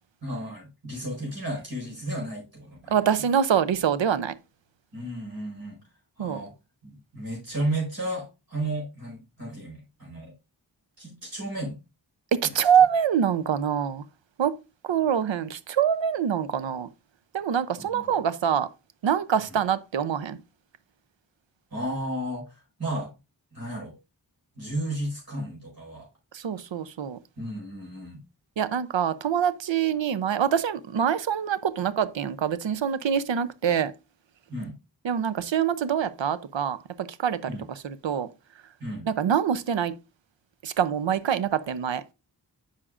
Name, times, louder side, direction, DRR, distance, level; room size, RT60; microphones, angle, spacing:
voice 1, 0.2-3.0 4.9-5.8 6.2-6.5 6.8-10.3 11.0-11.8 12.4-12.5 17.8-18.1 21.7-22.5 22.8-23.1 23.5-23.9 24.5-26.1 27.4-28.2 34.5-34.7 37.5-37.6 38.8-39.1, right 1 dB, 50° right, 4.8 m, -33 dB
voice 2, 2.9-4.3 6.2-6.4 12.3-14.0 14.4-14.5 14.8-16.9 17.3-18.7 19.0-20.4 26.3-27.2 28.6-33.9 35.0-38.3 39.0-39.9 40.6-42.0, right 8 dB, 80° right, 0.6 m, -25 dB
9.8 x 5.8 x 2.4 m
wide cardioid pair, 75°, 45 cm